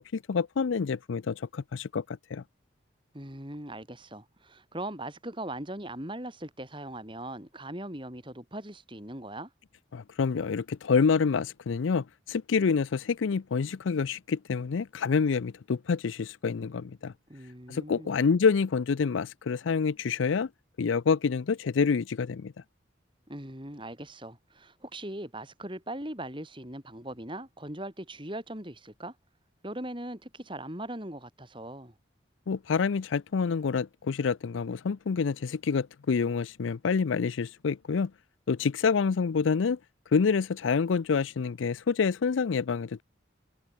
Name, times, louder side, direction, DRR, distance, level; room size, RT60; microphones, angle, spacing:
voice 1, 0.0-2.4 9.9-17.1 17.7-20.5 20.8-22.5 32.5-38.1 38.5-39.8 40.1-43.0, left 5 dB, 85° left, 0.5 m, -27 dB
voice 2, 3.1-9.5 17.3-18.1 23.3-29.1 29.6-31.9, right 1 dB, 25° right, 5.1 m, -40 dB
head